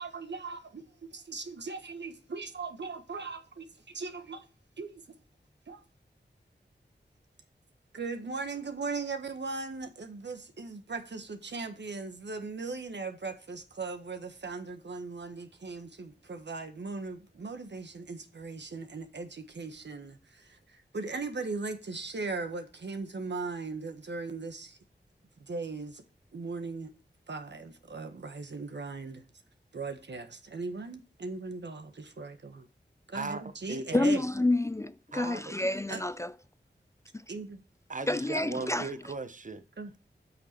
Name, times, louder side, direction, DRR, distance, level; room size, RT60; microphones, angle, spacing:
voice 1, 0.0-4.5 4.8-5.2 5.7-5.8 7.9-24.8 25.4-26.0 26.3-26.9 27.3-29.2 29.7-32.7 33.1-34.2 35.9-36.0 37.3-37.6 39.8-39.9, right 3 dB, 75° right, 1.3 m, -38 dB
voice 2, 33.1-33.9 35.1-35.6 37.9-39.6, right 3 dB, 45° right, 1.0 m, -38 dB
voice 3, 33.9-36.3 38.1-38.9, left 2 dB, 15° left, 0.4 m, -28 dB
8.2 x 6.2 x 4.3 m
wide cardioid pair, 55°, 18 cm